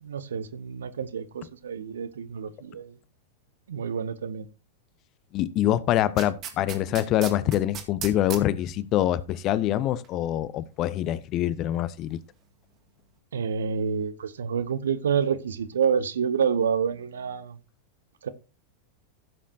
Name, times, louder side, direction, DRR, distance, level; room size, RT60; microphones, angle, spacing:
voice 1, 0.0-3.0 3.7-4.5 13.3-17.6 18.2-18.3, right 7 dB, 65° right, 0.9 m, -28 dB
voice 2, 5.3-12.2, left 13 dB, 35° left, 0.7 m, -25 dB
sound 1, 6.2-8.4 10.0-10.1, right 8 dB, 35° right, 2.2 m, -36 dB
15.5 x 7.4 x 2.7 m
figure-of-eight pair, 90°, 0 cm